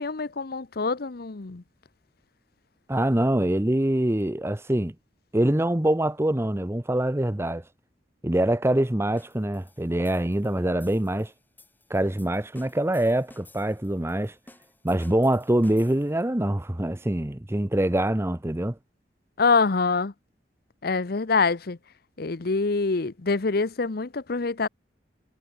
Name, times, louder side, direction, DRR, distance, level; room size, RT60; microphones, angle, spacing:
voice 1, 0.0-1.6 19.4-20.1 20.8-21.8 22.2-24.7, left 4 dB, 55° left, 0.8 m, -25 dB
voice 2, 2.9-4.9 5.3-7.6 8.2-11.3 11.9-14.3 14.8-18.8, right 1 dB, 15° right, 0.8 m, -24 dB
sound 1, 9.2-16.3, left 2 dB, 10° left, 5.0 m, -55 dB
head